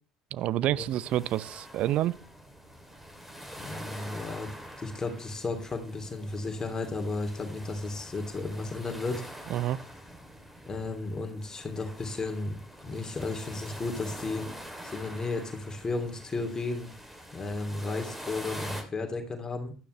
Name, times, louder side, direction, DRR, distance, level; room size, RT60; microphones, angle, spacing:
voice 1, 0.3-2.2 9.5-9.8, right 13 dB, 55° right, 0.6 m, -28 dB
sound 1, 0.9-18.8, equal, 5° right, 3.2 m, -45 dB
voice 2, 3.6-4.5 4.8-9.2 10.7-12.6 12.8-14.5 14.8-16.9 17.3-19.8, left 3 dB, 25° left, 2.9 m, -34 dB
15.5 x 12.5 x 3.3 m
hypercardioid pair, 65°, 2 cm